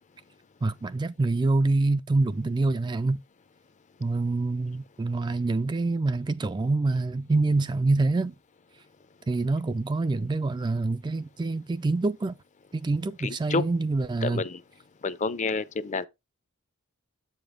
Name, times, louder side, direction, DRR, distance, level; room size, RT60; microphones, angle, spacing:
voice 1, 0.6-3.2 4.0-8.3 9.3-12.4 12.7-14.4, right 3 dB, 20° right, 0.3 m, -26 dB
voice 2, 13.2-13.6 14.2-14.6 15.0-16.1, left 4 dB, 35° left, 0.5 m, -29 dB
7.7 x 5.2 x 3.8 m
head